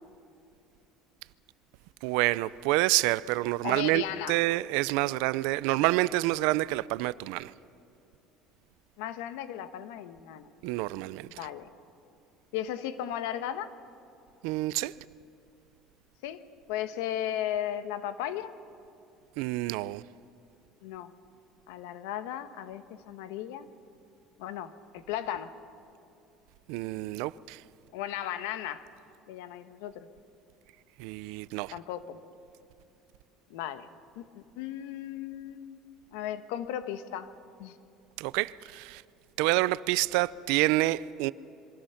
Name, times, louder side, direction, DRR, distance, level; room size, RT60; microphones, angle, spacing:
voice 1, 2.0-7.5 10.6-11.4 14.4-14.9 19.4-20.0 26.7-27.6 31.0-31.7 38.2-39.0 39.4-41.3, right 19 dB, 75° right, 0.5 m, -28 dB
voice 2, 3.6-4.3 9.0-10.5 11.3-11.7 12.5-13.7 16.2-16.4 16.7-18.5 20.8-21.1 21.7-23.7 24.4-25.5 27.9-28.8 29.3-30.1 31.7-32.2 33.5-33.9 34.1-35.8 36.1-37.3 37.6-37.8, left 11 dB, 90° left, 1.3 m, -36 dB
27.0 x 23.5 x 5.9 m
cardioid pair, 145°, 0 cm